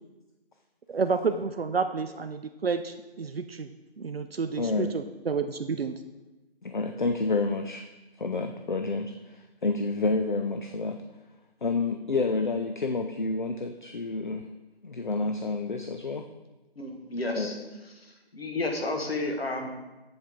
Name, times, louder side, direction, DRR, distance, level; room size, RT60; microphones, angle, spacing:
voice 1, 0.9-3.7 4.0-5.9, right 5 dB, 70° right, 8 dB, 0.5 m, -30 dB
voice 2, 4.6-4.9 6.6-7.8 8.2-11.0 11.6-14.5 14.8-16.3, left 3 dB, 50° left, 6 dB, 0.5 m, -29 dB
voice 3, 16.8-17.9 18.3-19.7, left 2 dB, 70° left, 3 dB, 1.6 m, -31 dB
7.8 x 7.2 x 3.6 m, 1.1 s
figure-of-eight pair, 170°, 31 cm